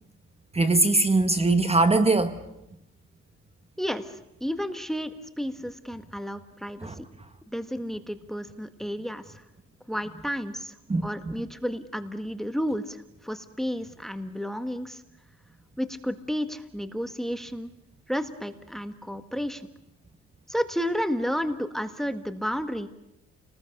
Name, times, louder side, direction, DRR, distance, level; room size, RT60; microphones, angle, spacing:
voice 1, 0.5-2.3 6.8-6.9 10.9-11.1, right 2 dB, 20° right, 10 dB, 1.5 m, -21 dB
voice 2, 3.8-7.1 7.5-9.5 9.9-10.8 11.0-15.0 15.8-17.7 18.1-19.7 20.5-22.9, equal, ahead, 10 dB, 1.7 m, -32 dB
29.5 x 20.0 x 6.7 m, 0.86 s
cardioid pair, 90°, 30 cm